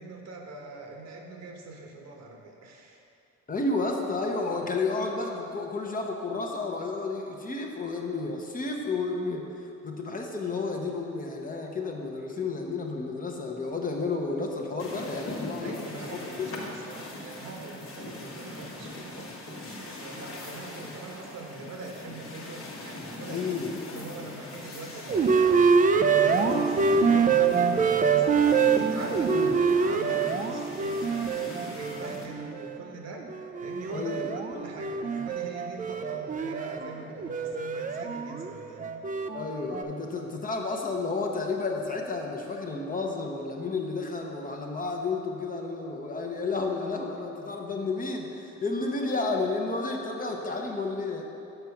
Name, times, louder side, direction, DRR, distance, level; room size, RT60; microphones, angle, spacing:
voice 1, 0.0-3.0 15.6-23.6 23.9-33.3 33.6-38.9, right 3 dB, 60° right, 1 dB, 1.1 m, -43 dB
voice 2, 3.5-9.5 9.8-16.0 16.5-16.6 23.3-23.7 29.3-29.6 33.9-34.4 39.3-51.2, left 3 dB, 30° left, 1 dB, 0.8 m, -31 dB
sound 1, 14.8-32.3, left 2 dB, 45° left, 1.2 m, -40 dB
sound 2, 25.1-32.8 33.2-39.8, right 5 dB, 30° right, 0.4 m, -25 dB
6.8 x 4.6 x 5.8 m, 2.8 s
cardioid pair, 90°, 30 cm